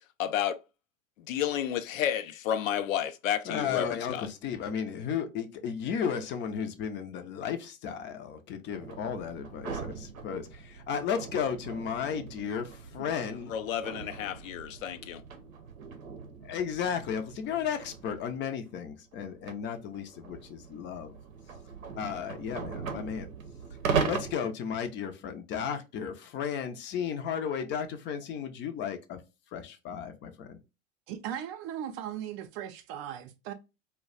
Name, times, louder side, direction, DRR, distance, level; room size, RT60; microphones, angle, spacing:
voice 1, 0.2-0.6 1.2-4.3 13.5-15.2, left 10 dB, 80° left, 0.5 m, -31 dB
voice 2, 3.5-13.5 16.4-21.2 22.0-23.3 24.0-29.2 29.5-30.6, left 7 dB, 30° left, 0.5 m, -34 dB
sound 1, 8.7-18.4 19.1-24.3, right 5 dB, 90° right, 0.7 m, -38 dB
voice 3, 31.1-33.5, right 10 dB, 50° right, 0.5 m, -38 dB
2.3 x 2.2 x 3.8 m
hypercardioid pair, 95°, 39 cm